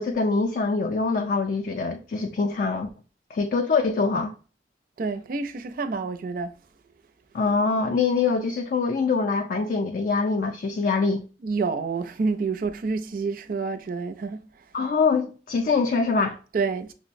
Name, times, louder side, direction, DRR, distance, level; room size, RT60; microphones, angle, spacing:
voice 1, 0.0-2.9 3.3-4.3 7.3-11.2 14.7-16.4, left 4 dB, 55° left, 0.4 m, -24 dB
voice 2, 5.0-6.5 11.4-14.4 16.5-16.9, right 4 dB, 55° right, 0.4 m, -28 dB
5.9 x 2.0 x 2.5 m
head